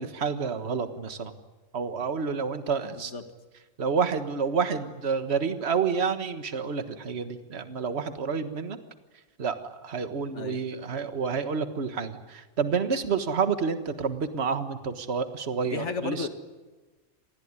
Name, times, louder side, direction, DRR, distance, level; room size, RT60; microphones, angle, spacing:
voice 1, 0.0-1.3 1.7-3.1 3.8-8.8 9.4-16.3, right 5 dB, 55° right, 9 dB, 1.7 m, -29 dB
voice 2, 2.8-3.2 10.3-10.6 15.6-16.3, left 4 dB, 60° left, 8 dB, 2.1 m, -34 dB
26.5 x 20.0 x 9.7 m, 1.3 s
omnidirectional pair, 1.3 m